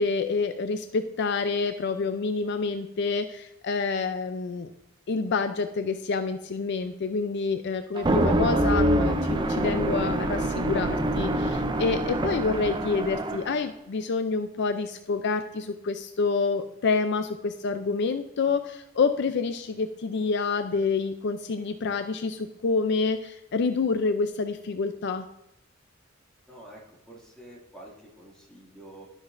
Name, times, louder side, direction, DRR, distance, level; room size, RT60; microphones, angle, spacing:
voice 1, 0.0-4.7 5.1-25.3, left 4 dB, 55° left, 9 dB, 0.4 m, -28 dB
sound 1, 8.0-13.6, right 1 dB, 20° right, 0.4 m, -25 dB
voice 2, 26.5-29.1, right 1 dB, 5° left, -5 dB, 2.2 m, -48 dB
12.0 x 6.1 x 2.5 m, 0.87 s
head